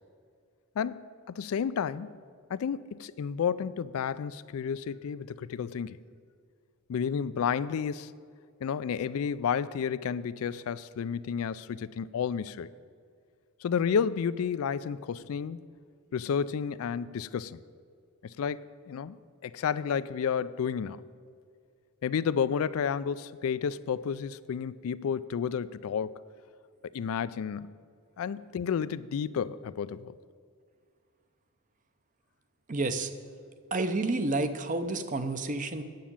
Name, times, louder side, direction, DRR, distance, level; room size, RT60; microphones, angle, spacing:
voice 1, 0.8-2.1 2.5-6.0 6.9-8.1 8.6-12.7 13.6-15.6 16.1-17.6 18.2-19.2 19.4-21.0 22.0-26.1 26.9-27.8 28.2-30.1, left 7 dB, 75° left, 16 dB, 0.3 m, -31 dB
voice 2, 32.7-33.1 33.7-35.8, right 2 dB, 35° right, 10 dB, 0.6 m, -30 dB
9.2 x 7.2 x 8.6 m, 2.2 s
head